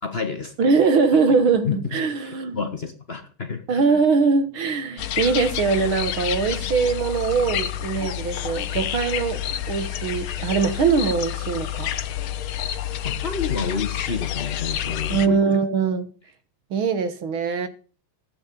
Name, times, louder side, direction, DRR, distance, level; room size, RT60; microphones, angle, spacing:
voice 1, 0.0-0.7 1.6-2.0 2.5-3.8 13.0-15.4, left 5 dB, 35° left, 1.3 m, -29 dB
voice 2, 0.6-2.6 3.7-9.4 9.7-11.9 15.1-16.1 16.7-17.7, right 5 dB, 75° right, 2.4 m, -22 dB
sound 1, 5.0-15.3, left 11 dB, 85° left, 1.8 m, -29 dB
15.5 x 8.8 x 6.9 m
omnidirectional pair, 2.3 m